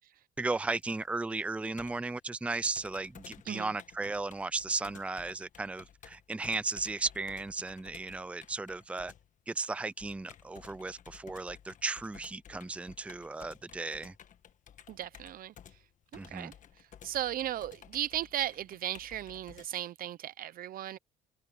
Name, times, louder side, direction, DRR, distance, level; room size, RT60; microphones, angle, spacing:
voice 1, 0.4-9.1 9.5-14.1 16.1-16.5, right 3 dB, 5° right, 0.5 m, -35 dB
Computer keyboard, 0.8-19.7, left 9 dB, 50° left, 1.5 m, -55 dB
voice 2, 14.9-15.5 16.1-16.5 17.0-21.0, right 12 dB, 60° right, 0.8 m, -36 dB
cardioid pair, 110°, 17 cm